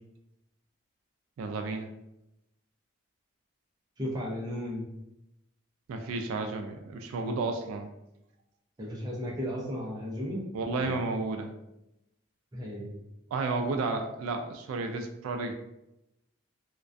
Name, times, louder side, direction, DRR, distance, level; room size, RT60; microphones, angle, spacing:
voice 1, 1.4-1.9 5.9-7.9 10.5-11.5 13.3-15.5, right 3 dB, 85° right, 7 dB, 0.3 m, -32 dB
voice 2, 4.0-4.8 8.8-10.4 10.8-11.0 12.5-13.0, equal, 20° right, -3 dB, 0.4 m, -35 dB
2.3 x 2.2 x 2.5 m, 0.88 s
head